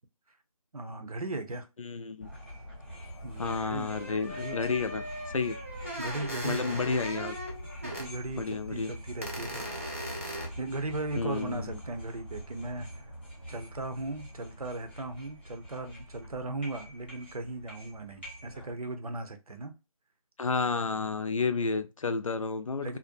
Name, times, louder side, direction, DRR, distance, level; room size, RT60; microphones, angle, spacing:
voice 1, 0.7-1.7 3.2-3.9 4.3-4.7 6.0-6.8 7.8-9.7 10.1-12.9 13.5-19.7 22.8-23.0, right 2 dB, 80° right, 0.7 m, -37 dB
voice 2, 1.8-2.3 3.4-5.6 6.4-7.4 8.3-8.9 11.2-11.8 20.4-23.0, left 4 dB, 65° left, 0.4 m, -31 dB
sound 1, 2.2-18.7, equal, 20° left, 0.7 m, -44 dB
sound 2, 3.0-3.1 3.4-8.1 8.5-8.6 9.2-10.5, equal, 25° right, 0.4 m, -39 dB
2.6 x 2.1 x 2.5 m
figure-of-eight pair, 170°, 19 cm